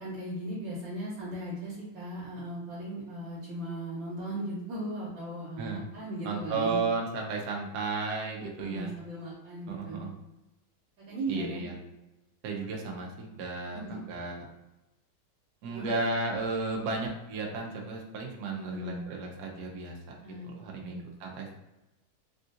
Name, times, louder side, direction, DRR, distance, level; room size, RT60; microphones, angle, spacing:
voice 1, 0.0-6.8 8.6-10.1 11.1-11.6 13.7-14.1 15.7-15.9 18.4-19.0 20.2-21.0, right 1 dB, 70° right, -7 dB, 1.5 m, -37 dB
voice 2, 6.2-8.9 9.7-10.1 11.3-11.7 12.4-14.5 15.6-21.5, right 3 dB, 90° right, 0 dB, 0.8 m, -34 dB
3.5 x 2.4 x 2.6 m, 0.99 s
omnidirectional pair, 2.3 m